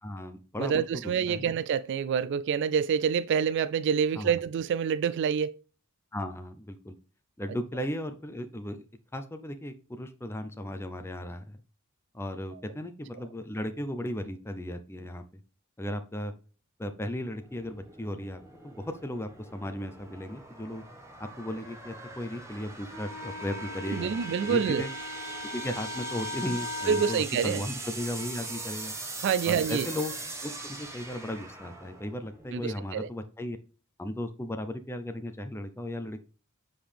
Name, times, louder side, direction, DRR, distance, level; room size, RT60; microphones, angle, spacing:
voice 1, 0.0-0.8 1.3-1.5 4.2-4.3 6.1-6.9 7.4-8.9 9.1-11.6 12.1-15.2 15.8-16.3 16.8-20.8 21.2-24.9 25.5-28.9 29.5-30.1 30.4-33.6 34.0-36.2, left 1 dB, 10° left, 0.6 m, -36 dB
voice 2, 0.6-5.6 23.9-24.9 26.9-27.6 29.2-29.9 32.5-33.1, right 7 dB, 55° right, 0.3 m, -27 dB
sound 1, 17.3-32.7, right 2 dB, 15° right, 1.4 m, -42 dB
Wind instrument woodwind instrument, 22.9-27.2, left 2 dB, 80° right, 2.2 m, -39 dB
7.7 x 5.0 x 3.4 m
head